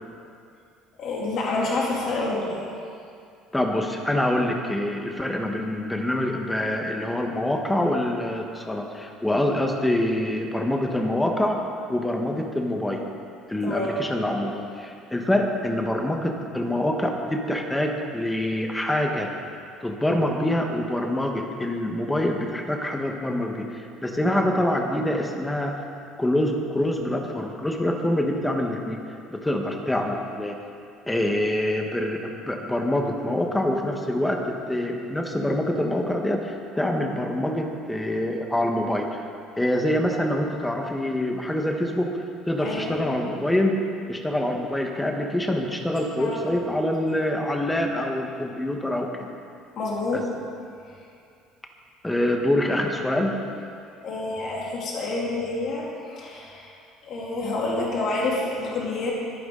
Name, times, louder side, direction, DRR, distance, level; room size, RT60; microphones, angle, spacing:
voice 1, 1.0-2.6 13.6-14.0 42.6-43.0 46.2-46.6 49.8-50.2 54.0-56.7 57.0-59.1, left 2 dB, 50° left, -4 dB, 2.7 m, -28 dB
voice 2, 3.5-11.6 11.9-13.0 13.5-19.3 19.8-25.8 26.2-29.0 29.3-30.6 31.1-39.2 39.6-43.8 44.1-49.3 50.1-50.2 52.0-53.4, left 1 dB, 5° left, 2 dB, 1.2 m, -25 dB
22.0 x 9.4 x 3.8 m, 2.4 s
cardioid pair, 140°, 0 cm